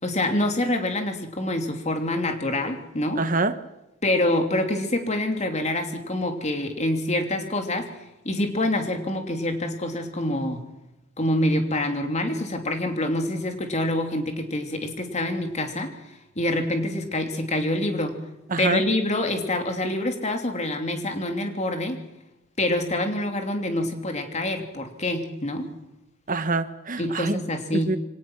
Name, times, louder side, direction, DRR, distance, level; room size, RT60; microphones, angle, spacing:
voice 1, 0.0-3.2 4.0-7.9 8.2-10.6 11.2-15.9 16.4-18.2 18.6-22.0 22.6-25.7 27.0-27.9, left 1 dB, 35° left, 4 dB, 3.0 m, -26 dB
voice 2, 3.1-3.5 18.5-18.8 26.3-27.4 27.7-28.0, right 3 dB, 40° right, 11 dB, 1.3 m, -25 dB
24.5 x 18.0 x 6.1 m, 0.95 s
head